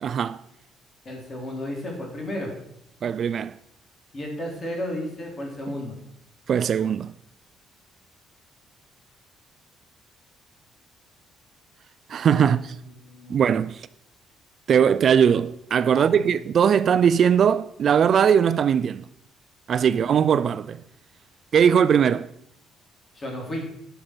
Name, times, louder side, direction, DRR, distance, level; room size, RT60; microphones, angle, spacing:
voice 1, 0.0-0.4 3.0-3.5 6.5-7.1 12.1-12.8 13.3-13.9 14.7-19.0 19.7-20.8 21.5-22.3, right 8 dB, 45° right, 0.3 m, -20 dB
voice 2, 1.1-2.5 4.1-6.0 12.4-13.4 15.9-16.3 19.9-20.0 23.1-23.6, left 1 dB, 30° left, 3.6 m, -33 dB
11.5 x 6.6 x 6.1 m
cardioid pair, 150°, 0 cm